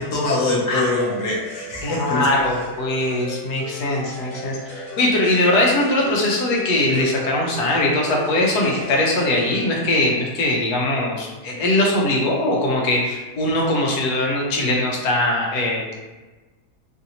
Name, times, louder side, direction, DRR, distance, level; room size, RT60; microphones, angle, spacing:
voice 1, 0.0-2.3, left 2 dB, 60° left, -4 dB, 1.0 m, -23 dB
sound 1, 0.9-9.8, left 3 dB, 45° left, 0.8 m, -36 dB
voice 2, 1.8-15.9, left 1 dB, 75° left, -2 dB, 1.3 m, -21 dB
3.2 x 2.6 x 2.8 m, 1.2 s
omnidirectional pair, 1.7 m